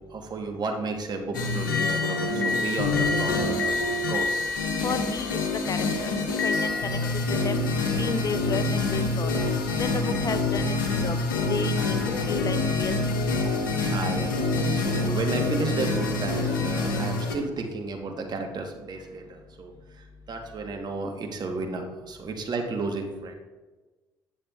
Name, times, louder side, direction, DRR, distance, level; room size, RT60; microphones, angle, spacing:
voice 1, 0.1-4.5 8.1-8.2 13.8-23.3, right 3 dB, 40° right, 3 dB, 1.2 m, -33 dB
sound 1, 1.3-17.4, left 3 dB, 85° left, 0.7 m, -26 dB
voice 2, 4.8-6.1 6.4-7.0 7.3-7.7 8.0-9.3 9.8-10.8 11.0-11.2 11.5-12.0 12.3-12.9 13.2-13.3, left 5 dB, 35° left, 10 dB, 0.5 m, -32 dB
8.7 x 7.1 x 2.4 m, 1.2 s
hypercardioid pair, 55°, 10 cm